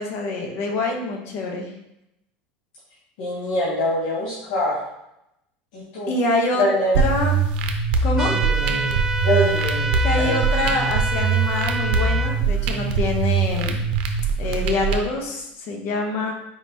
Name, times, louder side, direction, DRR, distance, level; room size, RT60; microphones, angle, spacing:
voice 1, 0.0-1.7 6.1-6.7 7.0-7.3 8.0-8.3 10.0-13.8 14.4-16.3, left 3 dB, 55° left, 2 dB, 0.9 m, -25 dB
voice 2, 3.2-4.8 5.7-6.1 6.5-7.0 8.2-9.0 9.2-10.4, left 1 dB, 75° left, -5 dB, 1.1 m, -24 dB
sound 1, 6.9-14.9, right 5 dB, 75° right, 0.6 m, -22 dB
sound 2, 8.2-12.4, right 3 dB, 10° right, 0.3 m, -27 dB
4.6 x 3.4 x 2.8 m, 0.84 s
supercardioid pair, 115°, 5 cm